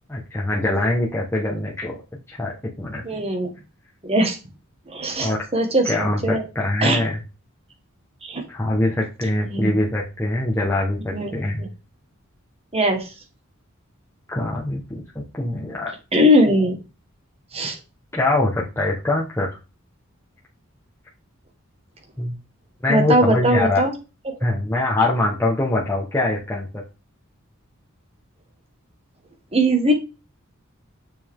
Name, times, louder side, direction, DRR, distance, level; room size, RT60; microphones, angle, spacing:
voice 1, 0.1-1.9 2.3-2.5 2.8-3.0 5.2-5.4 5.9-7.2 8.5-11.7 14.3-15.9 18.1-19.5 22.2-22.4 22.8-23.8 24.4-26.7, left 2 dB, 10° left, -4 dB, 1.4 m, -23 dB
voice 2, 3.0-3.5 4.0-4.4 4.9-6.4 6.8-7.0 8.2-8.4 9.4-9.7 11.1-11.3 11.6-11.7 12.7-13.1 16.1-16.8 17.5-17.8 22.9-23.9 24.3-24.4 29.5-29.9, equal, 30° right, 4 dB, 1.7 m, -20 dB
7.0 x 5.8 x 3.8 m, 0.29 s
head